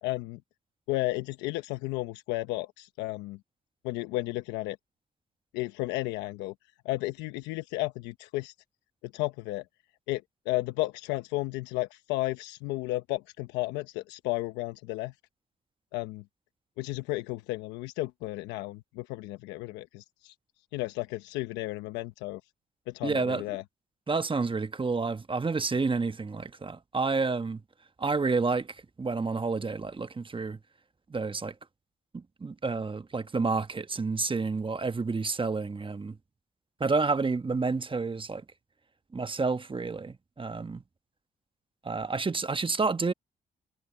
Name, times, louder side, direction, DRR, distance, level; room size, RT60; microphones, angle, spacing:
voice 1, 0.0-0.4 0.9-3.4 3.8-4.8 5.5-6.5 6.8-8.5 9.0-9.6 10.1-15.1 15.9-16.2 16.8-20.3 20.7-22.4 22.9-23.6, left 19 dB, 90° left, 1.0 m, -33 dB
voice 2, 23.0-23.4 24.1-27.6 28.0-30.6 31.1-31.5 32.1-36.2 36.8-38.4 39.1-40.8 41.8-43.1, right 4 dB, 30° right, 1.3 m, -29 dB
supercardioid pair, 50°, 18 cm